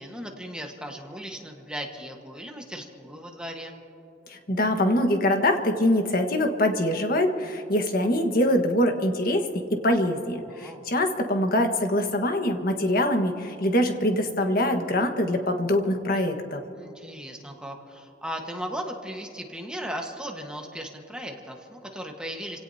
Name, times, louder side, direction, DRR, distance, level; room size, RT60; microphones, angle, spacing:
voice 1, 0.0-3.8 10.4-10.8 16.7-22.6, equal, 5° right, 1 dB, 1.4 m, -37 dB
voice 2, 4.3-16.6, left 1 dB, 50° left, 5 dB, 1.5 m, -24 dB
29.5 x 17.5 x 2.8 m, 2.9 s
head